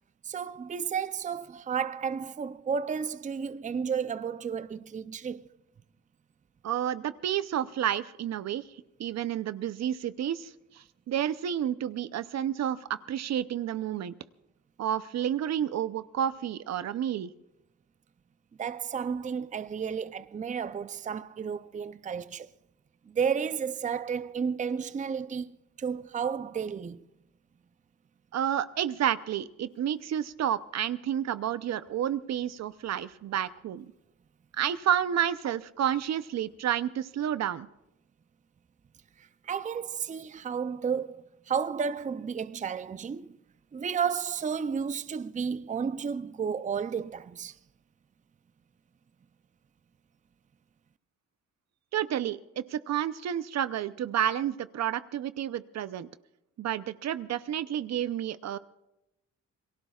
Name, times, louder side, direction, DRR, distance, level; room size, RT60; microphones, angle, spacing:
voice 1, 0.2-5.5 18.6-22.5 23.1-27.0 39.2-43.4 43.7-47.6, right 6 dB, 25° right, 0.6 m, -32 dB
voice 2, 6.6-8.6 9.0-14.1 14.8-17.3 28.3-33.9 34.5-37.7 51.9-56.1 56.6-58.6, right 10 dB, 60° right, 0.7 m, -30 dB
28.5 x 19.0 x 2.4 m
cardioid pair, 90°, 30 cm